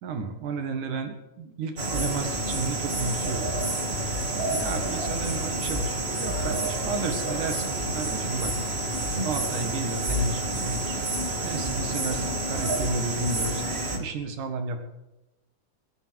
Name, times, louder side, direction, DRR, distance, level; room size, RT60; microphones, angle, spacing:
voice 1, 0.0-3.5 4.3-8.5 9.2-11.0 11.4-14.8, right 4 dB, 80° right, 6 dB, 3.2 m, -33 dB
sound 1, 1.8-14.0, right 1 dB, 25° right, 1.9 m, -29 dB
17.5 x 12.5 x 4.7 m, 0.98 s
omnidirectional pair, 3.5 m